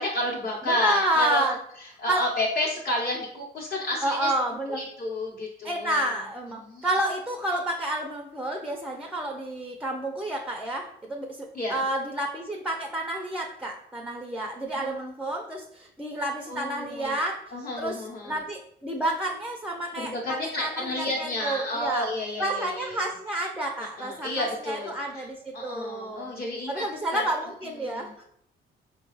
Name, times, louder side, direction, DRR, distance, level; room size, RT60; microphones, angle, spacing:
voice 1, 0.0-1.4 2.0-4.3 4.7-6.0 6.6-6.8 11.5-11.8 14.7-15.0 16.5-17.1 17.5-18.4 20.0-23.1 24.0-25.2 25.5-26.8 27.1-27.2 27.8-28.3, left 1 dB, 50° left, -5 dB, 0.9 m, -31 dB
voice 2, 0.7-1.6 2.1-2.2 4.0-4.8 5.6-17.4 17.8-20.1 20.6-22.1 22.4-26.3 26.7-28.3, right 1 dB, 5° right, 2 dB, 0.4 m, -30 dB
4.7 x 2.3 x 3.0 m, 0.70 s
cardioid pair, 90°, 20 cm